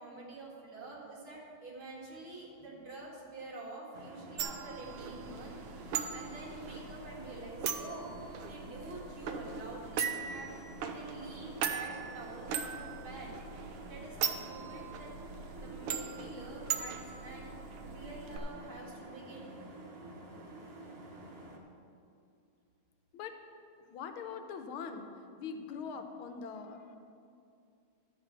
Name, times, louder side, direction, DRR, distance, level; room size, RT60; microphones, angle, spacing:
voice 1, 0.0-8.1 8.5-13.3 13.9-15.1 15.6-17.5 17.8-19.5, right 2 dB, 70° right, -3 dB, 2.9 m, -47 dB
sound 1, 3.9-21.6, right 2 dB, 40° right, 0.9 m, -49 dB
sound 2, 4.4-18.4, right 7 dB, 85° right, 1.6 m, -40 dB
voice 2, 23.9-25.1 25.4-27.0, left 6 dB, 80° left, 7 dB, 1.6 m, -42 dB
12.5 x 5.0 x 7.4 m, 2.5 s
omnidirectional pair, 2.3 m